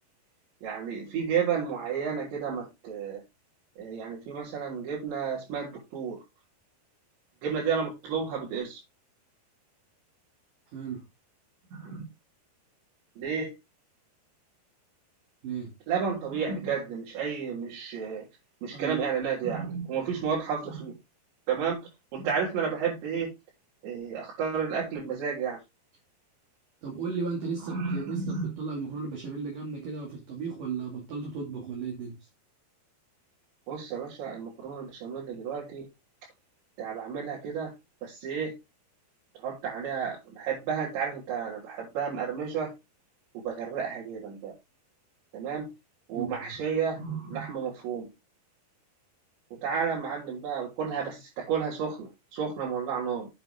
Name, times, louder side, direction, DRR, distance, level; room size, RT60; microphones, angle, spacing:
voice 1, 0.6-3.2 3.8-6.2 7.4-8.8 11.7-12.0 13.2-13.5 15.9-18.3 18.6-20.9 21.5-21.8 22.1-23.3 23.8-25.6 27.6-28.5 33.7-35.9 36.8-37.7 38.0-38.5 39.4-42.7 43.3-44.5 45.3-45.7 46.1-48.1 49.5-53.3, right 6 dB, 80° right, 6.0 m, -32 dB
voice 2, 26.8-32.2 46.1-46.5, right 5 dB, 50° right, 3.8 m, -35 dB
8.8 x 7.9 x 3.6 m
omnidirectional pair, 5.1 m